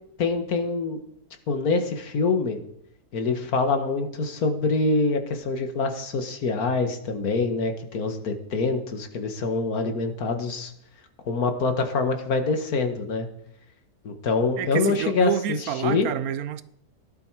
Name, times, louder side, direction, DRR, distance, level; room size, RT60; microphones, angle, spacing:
voice 1, 0.2-1.0 1.5-2.6 3.1-10.7 11.3-13.3 14.0-16.1, left 3 dB, 75° left, 1.9 m, -25 dB
voice 2, 14.6-16.6, right 10 dB, 75° right, 1.2 m, -28 dB
17.5 x 11.5 x 4.7 m
omnidirectional pair, 1.6 m